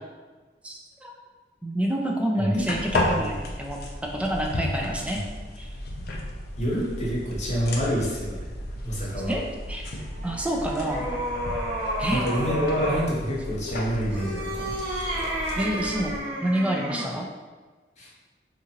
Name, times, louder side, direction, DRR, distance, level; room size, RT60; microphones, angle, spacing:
voice 1, 0.6-1.1 1.6-5.2 5.6-5.7 9.3-9.4 9.7-9.8 10.2-11.1 12.0-12.2 15.6-16.1 16.4-17.3, right 1 dB, 5° right, 0 dB, 0.3 m, -28 dB
sound 1, 2.6-16.2, left 1 dB, 60° left, 0.4 m, -34 dB
voice 2, 6.6-8.4 8.8-9.4 12.1-14.8 18.0-18.1, equal, 40° left, -5 dB, 0.8 m, -27 dB
sound 2, 10.1-13.1 14.0-17.2, right 1 dB, 30° right, 1.1 m, -31 dB
2.8 x 2.4 x 2.8 m, 1.4 s
head